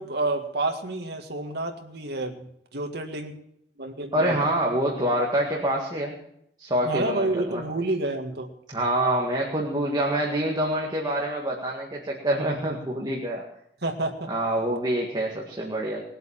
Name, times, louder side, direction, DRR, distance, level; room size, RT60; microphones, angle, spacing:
voice 1, 0.0-3.3 3.8-4.5 6.8-8.5 13.8-14.3, right 2 dB, 65° right, 4 dB, 2.0 m, -29 dB
voice 2, 4.1-6.2 6.6-7.6 8.7-13.4 14.3-16.0, right 1 dB, 25° right, -2 dB, 2.0 m, -26 dB
20.5 x 7.9 x 7.4 m, 0.75 s
head